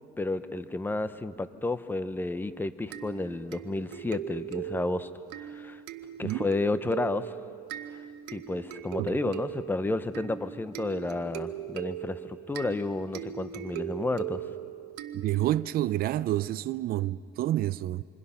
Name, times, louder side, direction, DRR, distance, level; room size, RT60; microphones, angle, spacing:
voice 1, 0.2-5.1 5.4-5.8 6.2-7.3 8.3-14.4, left 2 dB, 10° left, 0.9 m, -31 dB
sound 1, 2.9-15.7, right 11 dB, 90° right, 1.1 m, -39 dB
voice 2, 9.0-9.3 15.2-18.0, right 14 dB, 65° right, 0.5 m, -29 dB
27.0 x 26.0 x 5.8 m
cardioid pair, 110°, 17 cm